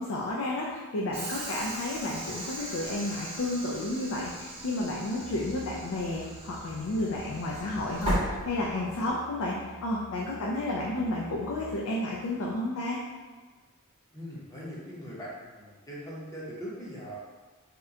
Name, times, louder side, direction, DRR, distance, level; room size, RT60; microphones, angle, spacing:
voice 1, 0.0-9.6 9.8-13.0, left 1 dB, 65° left, -3 dB, 0.4 m, -31 dB
Train / Sliding door, 1.1-9.1, equal, 25° right, 0.8 m, -37 dB
Musical instrument, 5.1-11.9, right 1 dB, 50° left, 0.9 m, -49 dB
voice 2, 14.1-17.2, equal, 15° left, -7 dB, 0.7 m, -41 dB
2.9 x 2.1 x 3.6 m, 1.4 s
head